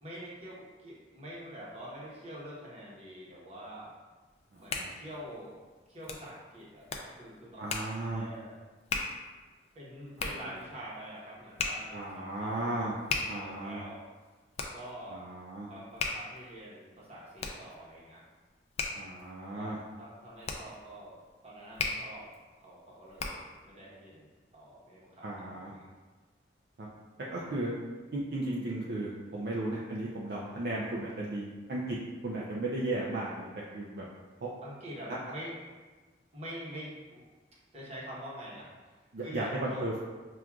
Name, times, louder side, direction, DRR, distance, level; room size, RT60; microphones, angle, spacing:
voice 1, 0.0-3.9 4.5-5.5 5.9-6.9 7.1-7.8 8.1-8.6 9.7-12.3 12.6-14.0 14.7-15.3 15.7-18.2 19.4-21.2 21.4-22.3 22.6-25.9 27.2-27.6 34.6-35.6 36.3-37.2 37.7-39.9, equal, 35° right, -6 dB, 1.0 m, -46 dB
Hands, 4.3-23.6, left 4 dB, 35° left, 0.3 m, -39 dB
voice 2, 4.5-4.9 7.6-8.2 11.9-13.0 13.3-13.8 15.1-15.7 18.9-19.8 25.2-25.7 26.8-26.9 27.3-27.7 28.1-32.0 32.2-34.0 34.4-34.5 39.1-39.9, right 2 dB, 60° right, -5 dB, 0.4 m, -35 dB
5.9 x 2.4 x 2.3 m, 1.3 s
head